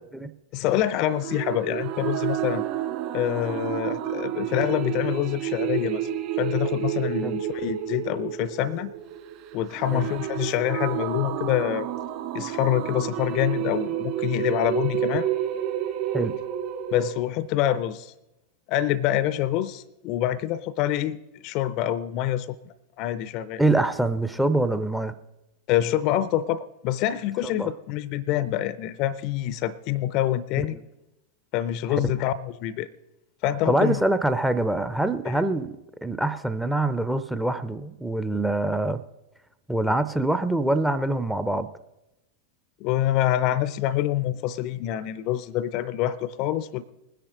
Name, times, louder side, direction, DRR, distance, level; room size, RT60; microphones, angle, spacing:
voice 1, 0.5-2.6 3.1-6.1 6.4-8.9 9.5-11.9 12.3-15.3 16.9-18.1 18.7-21.2 21.4-23.6 25.7-30.8 31.5-32.9 33.4-34.0 35.2-35.4 42.8-46.8, left 12 dB, 40° left, 18 dB, 0.5 m, -26 dB
sound 1, 1.1-17.1, right 12 dB, 45° right, 2.6 m, -30 dB
voice 2, 23.6-25.1 27.5-27.7 30.7-30.8 31.9-32.0 33.7-39.0 39.7-41.7, right 2 dB, 5° right, 11 dB, 0.6 m, -25 dB
20.5 x 10.0 x 3.8 m, 0.96 s
figure-of-eight pair, 90°, 0 cm